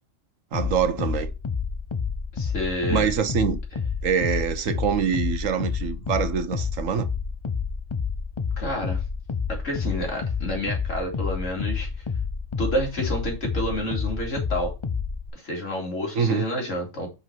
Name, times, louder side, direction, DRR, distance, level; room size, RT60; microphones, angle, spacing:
sound 1, 0.5-15.3, left 5 dB, 35° left, 0.5 m, -29 dB
voice 1, 0.5-1.3 2.9-3.6 4.0-7.1 16.1-16.5, right 7 dB, 75° right, 1.3 m, -24 dB
voice 2, 2.3-3.1 8.6-9.0 9.5-11.9 12.6-14.7 15.3-17.1, equal, 65° left, 2.7 m, -29 dB
5.6 x 5.4 x 4.5 m
omnidirectional pair, 1.4 m